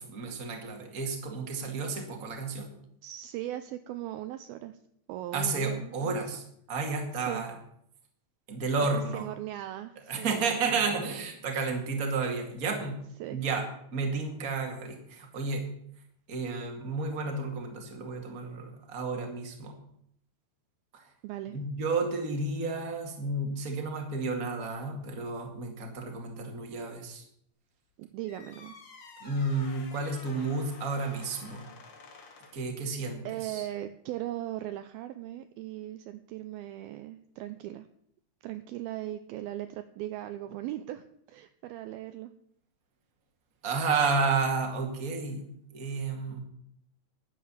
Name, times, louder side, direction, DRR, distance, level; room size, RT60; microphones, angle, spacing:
voice 1, 0.0-2.7 5.3-7.5 8.5-9.3 10.1-13.0 13.3-15.7 16.3-19.8 20.9-21.1 21.5-27.2 29.2-31.7 32.5-33.7 43.6-45.5 45.7-46.4, right 4 dB, 30° right, 2 dB, 2.0 m, -31 dB
voice 2, 3.0-4.8 5.1-6.2 7.1-7.4 8.9-10.4 13.2-13.4 21.2-21.6 28.0-28.8 33.2-37.9 38.4-42.3, right 13 dB, 80° right, 10 dB, 2.3 m, -38 dB
sound 1, 28.2-32.7, left 4 dB, 50° left, 1.7 m, -50 dB
11.0 x 9.4 x 7.2 m, 0.71 s
omnidirectional pair, 4.7 m